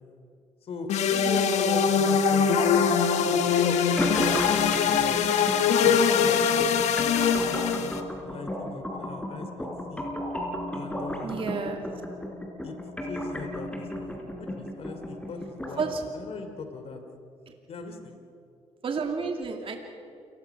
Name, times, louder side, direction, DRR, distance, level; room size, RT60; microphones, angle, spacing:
voice 1, 0.6-2.9 3.2-5.2 5.8-10.1 10.7-11.5 12.6-12.8 13.0-17.0 17.7-18.2, left 4 dB, 60° left, 6 dB, 3.0 m, -39 dB
sound 1, 0.9-8.0, left 6 dB, 85° left, 1.5 m, -23 dB
sound 2, 4.0-16.0, left 1 dB, 10° left, 4.4 m, -34 dB
voice 2, 11.2-11.8 15.8-16.0 18.8-19.8, right 5 dB, 50° right, 3 dB, 2.5 m, -30 dB
28.5 x 20.0 x 6.0 m, 2.6 s
cardioid pair, 90°, 11 cm